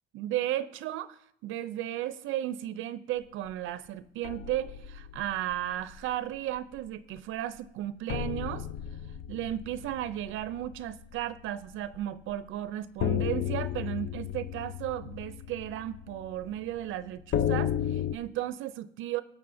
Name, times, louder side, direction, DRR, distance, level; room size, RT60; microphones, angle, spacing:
voice 1, 0.1-8.7 9.3-19.2, right 12 dB, 90° right, 14 dB, 0.4 m, -34 dB
sound 1, 4.2-6.2 6.5-6.8 7.2-7.3 8.1-11.9 12.3-12.4 13.0-18.2, left 11 dB, 75° left, 0.5 m, -34 dB
18.5 x 7.2 x 2.6 m, 0.72 s
cardioid pair, 90°, 20 cm